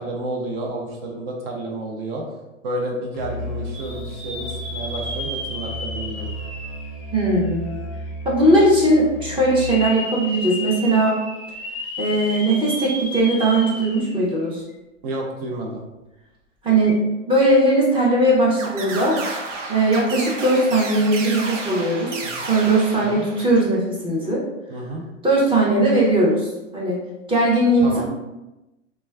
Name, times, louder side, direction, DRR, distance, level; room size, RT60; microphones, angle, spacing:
voice 1, 0.0-2.2 2.6-6.4 15.0-15.8 22.2-22.5 23.0-23.3 24.7-25.0 27.8-28.1, right 1 dB, 50° right, 0 dB, 0.8 m, -30 dB
Musical instrument, 3.1-9.9, equal, 30° left, 0.5 m, -33 dB
sound 1, 3.7-7.7 8.2-8.3 9.4-14.3 14.7-14.8 16.8-16.9, left 1 dB, 15° left, 0.9 m, -33 dB
voice 2, 7.1-7.7 8.2-11.2 12.0-14.6 16.6-17.0 17.3-19.2 19.7-24.4 25.2-27.0 27.3-28.1, right 1 dB, 15° right, -4 dB, 0.7 m, -19 dB
sound 2, 18.6-23.7, right 3 dB, 80° right, 0.6 m, -32 dB
3.1 x 2.2 x 2.3 m, 0.99 s
hypercardioid pair, 105°, 37 cm